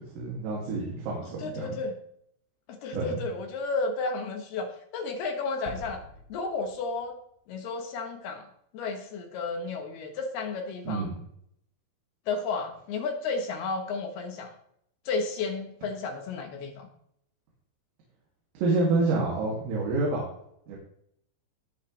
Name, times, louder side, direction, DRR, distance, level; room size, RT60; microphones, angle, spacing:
voice 1, 0.2-1.8 2.9-3.2 10.9-11.2 18.6-20.3 20.7-20.8, right 3 dB, 85° right, -4 dB, 5.2 m, -28 dB
voice 2, 1.4-2.0 2.7-6.0 6.3-7.2 7.5-8.5 8.7-11.1 12.3-14.5 15.1-16.9, left 4 dB, 65° left, 4 dB, 2.7 m, -32 dB
sound 1, 5.7-7.7, right 1 dB, 65° right, 5.3 m, -47 dB
20.0 x 6.8 x 3.4 m, 0.70 s
omnidirectional pair, 5.8 m